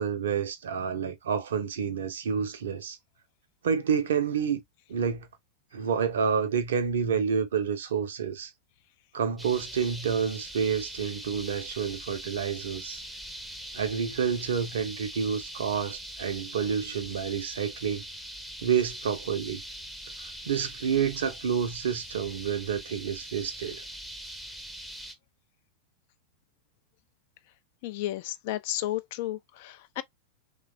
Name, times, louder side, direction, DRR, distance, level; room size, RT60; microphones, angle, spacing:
voice 1, 0.0-3.0 3.6-4.6 4.9-5.3 5.7-8.5 9.1-13.0 13.7-18.0 18.6-19.6 20.2-23.8, right 7 dB, 65° right, 0.6 m, -29 dB
sound 1, 9.4-25.1, right 1 dB, ahead, 0.6 m, -42 dB
voice 2, 27.8-30.0, left 14 dB, 50° left, 0.3 m, -33 dB
3.1 x 2.2 x 2.4 m
figure-of-eight pair, 90°, 0 cm